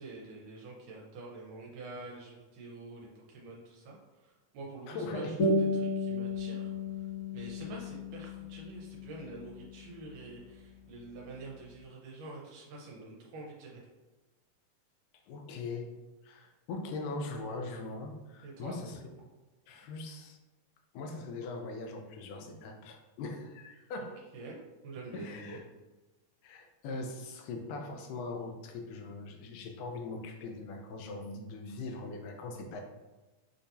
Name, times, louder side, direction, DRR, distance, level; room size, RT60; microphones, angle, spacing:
voice 1, 0.0-4.0 4.2-6.7 7.3-13.8 18.4-18.8 24.0-24.1 24.3-25.6, right 2 dB, 80° right, -3 dB, 2.2 m, -46 dB
voice 2, 4.9-5.4 15.3-15.9 16.2-19.0 19.7-20.4 20.9-24.2 25.1-25.6 26.4-32.8, left 3 dB, 80° left, 3 dB, 2.2 m, -40 dB
sound 1, 5.4-10.4, left 2 dB, 65° left, 1.3 m, -34 dB
6.4 x 2.8 x 2.6 m, 1.1 s
omnidirectional pair, 3.7 m